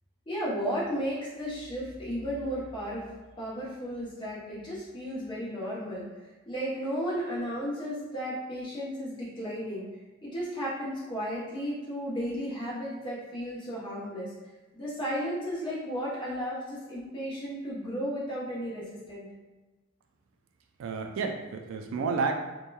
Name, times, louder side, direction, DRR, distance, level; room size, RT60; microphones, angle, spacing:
voice 1, 0.3-3.0 3.4-6.1 6.5-9.8 10.2-14.3 14.7-19.3, equal, 25° left, -7 dB, 0.7 m, -34 dB
voice 2, 20.8-22.4, right 4 dB, 75° right, 5 dB, 0.3 m, -30 dB
2.8 x 2.2 x 2.2 m, 1.2 s
head